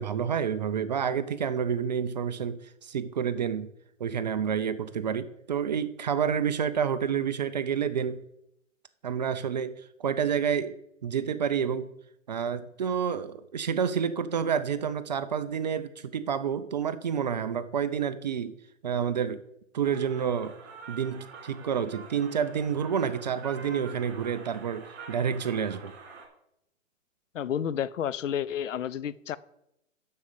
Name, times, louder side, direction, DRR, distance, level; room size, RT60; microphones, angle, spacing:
voice 1, 0.0-3.7 4.0-8.2 9.0-9.7 10.0-10.7 11.0-11.9 12.3-18.6 18.8-19.4 19.7-20.6 20.9-25.9, right 7 dB, 35° right, 12 dB, 0.4 m, -29 dB
sound 1, 19.8-26.3, right 5 dB, 55° right, 3.2 m, -46 dB
voice 2, 27.3-29.4, left 9 dB, 70° left, 17 dB, 0.6 m, -31 dB
7.6 x 6.3 x 7.3 m, 0.79 s
hypercardioid pair, 140°, 40 cm